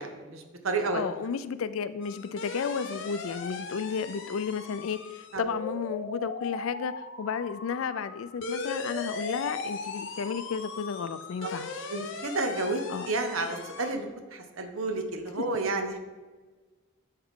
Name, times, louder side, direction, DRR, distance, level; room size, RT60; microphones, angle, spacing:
voice 1, 0.0-1.0 5.3-5.4 11.4-11.5 11.9-12.8 13.1-16.0, right 3 dB, 85° right, 6 dB, 0.9 m, -31 dB
voice 2, 0.9-11.9 12.9-13.1, left 6 dB, 80° left, 14 dB, 0.4 m, -33 dB
sound 1, 2.0-13.9, left 3 dB, 65° left, 0.8 m, -38 dB
9.5 x 4.8 x 3.7 m, 1.3 s
head